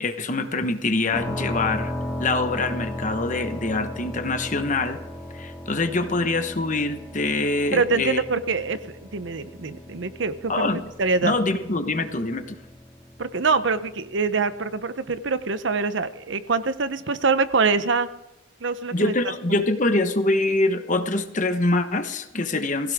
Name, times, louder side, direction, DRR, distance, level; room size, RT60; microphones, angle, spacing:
voice 1, 0.0-1.9 2.2-5.0 5.3-8.2 10.5-10.9 11.2-12.6 18.9-22.9, left 2 dB, 40° left, 8 dB, 1.1 m, -24 dB
sound 1, 1.1-14.8, left 1 dB, 5° left, 2.3 m, -36 dB
voice 2, 7.7-10.7 11.0-11.3 13.2-18.1 18.6-19.1 19.5-19.6, right 4 dB, 65° right, 12 dB, 0.8 m, -24 dB
19.0 x 16.5 x 3.6 m, 0.98 s
head